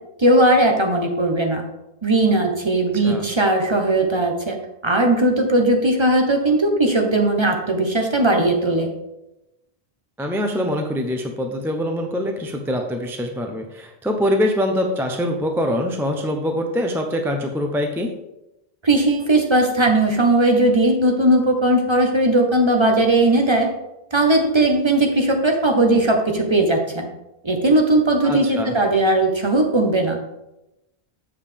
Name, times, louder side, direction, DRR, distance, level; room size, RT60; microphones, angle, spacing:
voice 1, 0.2-1.6 2.0-4.5 4.8-8.9 18.8-23.7 24.1-27.1 27.4-30.2, right 1 dB, 30° right, 3 dB, 0.9 m, -18 dB
voice 2, 2.9-3.2 10.2-18.1 28.2-28.7, equal, 5° right, 3 dB, 0.5 m, -24 dB
7.4 x 7.1 x 3.4 m, 0.93 s
omnidirectional pair, 1.0 m